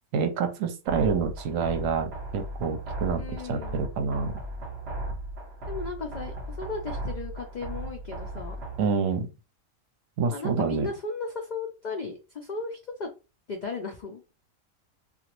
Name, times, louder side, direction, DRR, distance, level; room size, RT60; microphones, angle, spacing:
voice 1, 0.1-3.2 3.5-4.3 8.8-9.3 10.2-10.9, right 5 dB, 75° right, 1.0 m, -27 dB
sound 1, 0.9-8.9, right 1 dB, 55° right, 1.1 m, -36 dB
voice 2, 3.2-3.8 5.7-8.6 10.3-13.1 13.5-14.3, left 4 dB, 85° left, 0.4 m, -36 dB
2.9 x 2.5 x 2.9 m
omnidirectional pair, 1.4 m